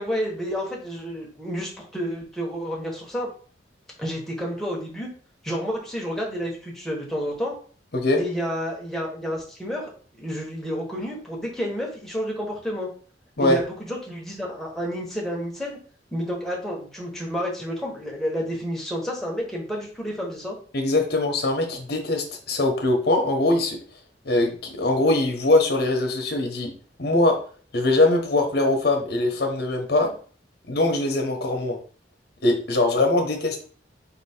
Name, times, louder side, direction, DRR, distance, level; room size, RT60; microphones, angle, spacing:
voice 1, 0.0-3.3 4.0-5.1 5.4-7.5 8.2-9.9 10.2-12.9 13.4-15.8 16.1-20.6, equal, ahead, -3 dB, 1.1 m, -30 dB
voice 2, 20.7-23.8 24.2-26.7 27.0-27.4 27.7-30.1 30.7-31.8 32.4-33.6, left 2 dB, 60° left, 4 dB, 1.0 m, -22 dB
4.2 x 2.9 x 4.3 m, 0.43 s
head